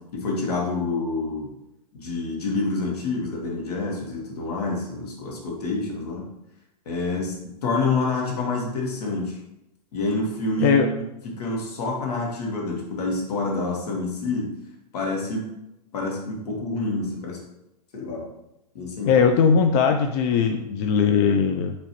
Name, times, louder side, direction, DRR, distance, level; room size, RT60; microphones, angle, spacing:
voice 1, 0.1-1.5 1.9-6.3 6.8-7.3 7.6-9.4 9.9-14.5 14.9-15.5 15.9-17.4 17.9-18.3 18.7-19.2, left 3 dB, 70° left, -1 dB, 1.5 m, -27 dB
voice 2, 19.0-21.8, left 6 dB, 40° left, 5 dB, 0.4 m, -19 dB
5.6 x 3.0 x 3.0 m, 0.89 s
hypercardioid pair, 115°, 21 cm